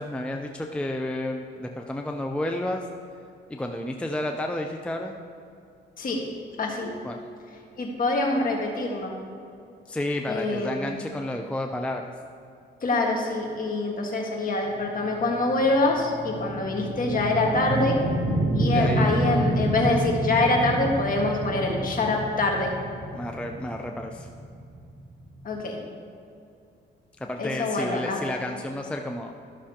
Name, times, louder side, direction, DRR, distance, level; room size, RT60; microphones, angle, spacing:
voice 1, 0.0-2.9 3.5-5.2 7.0-7.2 9.9-12.0 18.7-19.1 23.1-24.3 27.2-29.4, left 1 dB, 5° left, 3 dB, 0.5 m, -31 dB
voice 2, 6.6-7.0 7.8-9.1 10.3-10.9 12.8-18.0 18.5-22.7 25.4-25.8 27.4-28.2, left 2 dB, 45° left, 0 dB, 1.6 m, -25 dB
sound 1, 14.9-25.6, right 1 dB, 50° right, 1.1 m, -29 dB
13.0 x 6.2 x 2.9 m, 2.4 s
cardioid pair, 90°, 20 cm